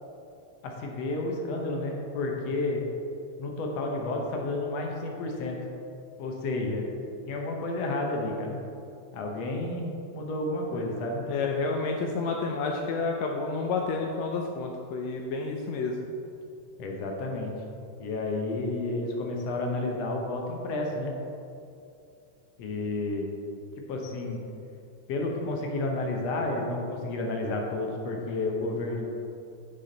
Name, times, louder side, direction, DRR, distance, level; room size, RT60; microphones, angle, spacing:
voice 1, 0.6-2.8 3.4-5.6 6.2-6.9 7.3-8.6 9.1-11.2 16.8-17.5 18.0-21.1 22.6-23.3 23.9-24.4 25.1-29.1, left 2 dB, 65° left, 0 dB, 1.7 m, -31 dB
voice 2, 11.2-16.0, left 4 dB, 85° left, 1 dB, 1.5 m, -30 dB
9.8 x 5.8 x 3.9 m, 2.6 s
omnidirectional pair, 3.7 m